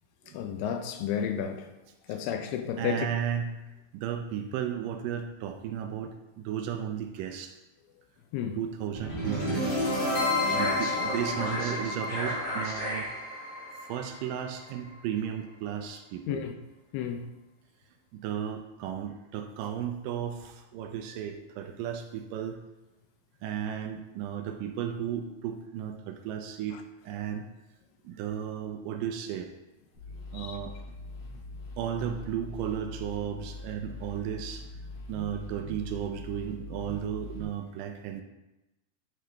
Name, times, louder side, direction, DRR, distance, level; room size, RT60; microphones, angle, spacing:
voice 1, 0.3-1.7 2.1-3.1 8.3-8.6 16.3-16.5 16.9-17.2 30.3-30.6, left 8 dB, 80° left, 2.2 m, -32 dB
voice 2, 2.8-3.6 3.9-7.5 8.6-9.7 10.5-13.1 13.9-16.4 18.1-22.6 23.4-26.8 27.0-27.5 28.0-29.5 30.3-30.7 31.8-34.7 35.1-38.2, right 9 dB, 80° right, 2.1 m, -34 dB
sound 1, 8.9-15.0, left 2 dB, 40° left, 2.2 m, -30 dB
sound 2, 29.9-37.4, left 2 dB, 65° left, 2.9 m, -43 dB
9.3 x 3.7 x 3.3 m
omnidirectional pair, 4.1 m